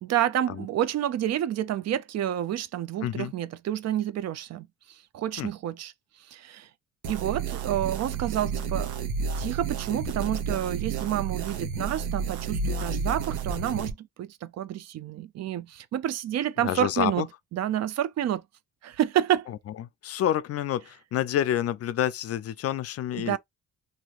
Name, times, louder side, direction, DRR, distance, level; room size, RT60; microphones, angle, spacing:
voice 1, 0.0-4.7 5.1-5.9 6.3-6.7 7.1-8.9 9.4-17.3 17.5-18.4 18.8-19.5 23.2-23.4, right 11 dB, 60° right, 0.5 m, -29 dB
voice 2, 3.0-3.3 5.4-5.5 16.6-17.3 20.0-23.4, left 11 dB, 55° left, 0.4 m, -28 dB
sound 1, 7.0-13.9, right 5 dB, 85° right, 0.9 m, -31 dB
3.0 x 2.7 x 2.4 m
cardioid pair, 90°, 30 cm